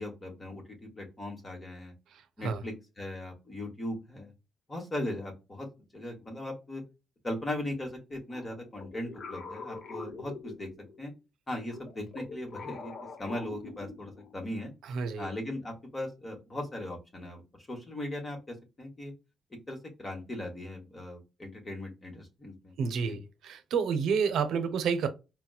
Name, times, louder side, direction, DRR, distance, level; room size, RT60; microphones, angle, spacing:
voice 1, 0.0-1.9 2.4-4.3 4.7-5.7 5.9-6.8 7.2-10.7 11.0-11.1 11.5-12.9 13.2-14.7 15.2-17.4 17.7-19.1 19.7-22.7 23.0-23.2, left 1 dB, 25° left, 1.2 m, -38 dB
sound 1, 8.3-11.1 11.6-14.4, left 4 dB, 60° left, 0.8 m, -44 dB
voice 2, 14.8-15.3 22.8-25.1, right 6 dB, 75° right, 0.6 m, -29 dB
4.1 x 2.2 x 2.3 m
cardioid pair, 90°, 0 cm